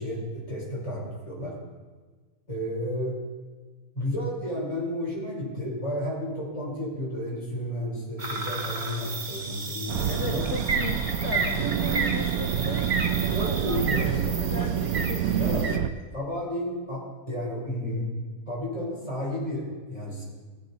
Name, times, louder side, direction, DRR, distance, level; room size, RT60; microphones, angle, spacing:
voice 1, 0.0-1.5 2.5-3.2 3.9-10.4 13.3-14.0 15.4-15.7 16.1-18.1 18.5-20.2, left 1 dB, 20° left, -4 dB, 4.0 m, -32 dB
sound 1, 8.2-15.8, right 3 dB, 35° right, 1.0 m, -32 dB
sound 2, 9.9-15.9, right 9 dB, 75° right, 1.1 m, -27 dB
voice 2, 10.1-15.9, left 4 dB, 55° left, 4 dB, 1.0 m, -37 dB
17.5 x 8.6 x 4.0 m, 1.4 s
omnidirectional pair, 1.6 m